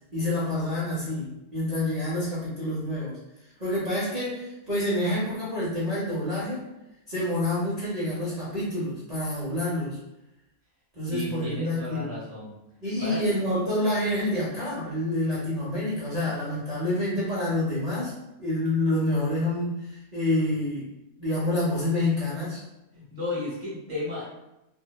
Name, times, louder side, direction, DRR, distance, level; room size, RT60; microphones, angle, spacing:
voice 1, 0.1-3.2 3.6-6.6 7.1-10.0 10.9-12.2 12.8-18.1 18.4-20.9 21.2-22.6, left 1 dB, 80° right, -9 dB, 0.3 m, -27 dB
voice 2, 11.1-12.5 13.0-13.2 22.9-24.3, left 1 dB, 20° left, -8 dB, 0.4 m, -34 dB
2.7 x 2.0 x 2.2 m, 0.91 s
omnidirectional pair, 1.7 m